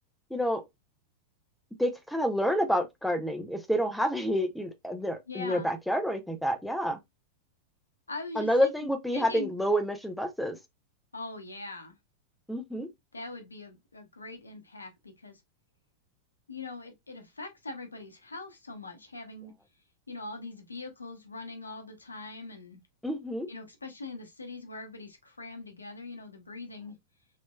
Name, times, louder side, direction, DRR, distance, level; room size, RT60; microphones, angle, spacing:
voice 1, 0.3-0.6 1.8-7.0 8.4-10.6 12.5-12.9 23.0-23.5, equal, ahead, 0.6 m, -28 dB
voice 2, 5.3-5.7 8.1-9.5 11.1-11.9 13.1-15.4 16.5-19.5 20.1-22.8 23.5-26.9, left 3 dB, 80° left, 0.8 m, -42 dB
3.4 x 3.0 x 2.2 m
figure-of-eight pair, 90°, 0 cm